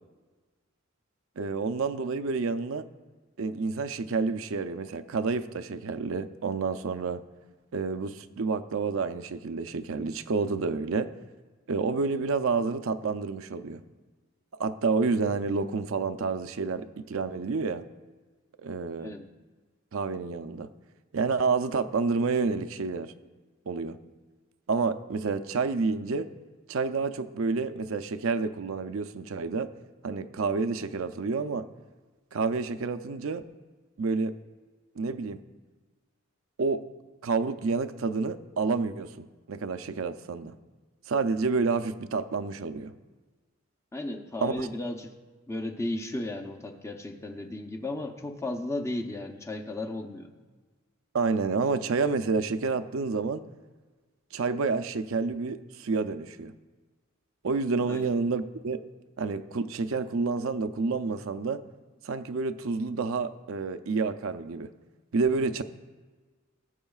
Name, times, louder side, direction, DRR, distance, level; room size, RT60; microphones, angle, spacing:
voice 1, 1.4-2.8 3.4-7.2 7.7-11.1 11.7-13.8 14.6-17.8 18.6-19.2 19.9-20.7 21.1-23.1 23.7-24.0 24.7-26.3 26.7-29.7 30.0-31.6 32.3-33.4 34.0-34.3 35.0-35.4 36.6-36.8 37.2-40.6 41.1-42.9 44.4-44.7 51.1-53.5 54.3-56.5 57.4-58.8 59.2-61.6 62.0-64.7 65.1-65.6, right 4 dB, 70° right, 11 dB, 0.5 m, -29 dB
voice 2, 43.9-45.1 45.5-50.3 57.9-58.1, left 1 dB, 15° left, 5 dB, 0.7 m, -34 dB
19.5 x 8.0 x 2.4 m, 1.3 s
head